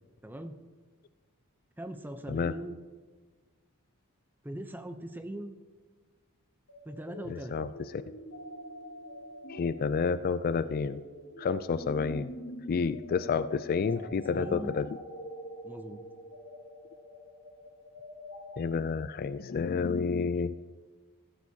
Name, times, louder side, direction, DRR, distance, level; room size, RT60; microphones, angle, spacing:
voice 1, 0.2-0.6 1.8-2.8 4.4-5.5 6.8-7.7 13.8-14.8 15.6-16.0, right 1 dB, 10° right, 8 dB, 0.7 m, -41 dB
sound 1, 6.7-18.6, equal, 75° left, 2.0 m, -45 dB
voice 2, 7.3-7.7 9.5-11.0 11.4-12.3 12.7-14.9 18.6-20.5, left 5 dB, 40° left, 13 dB, 0.3 m, -30 dB
15.5 x 13.0 x 2.8 m, 1.5 s
head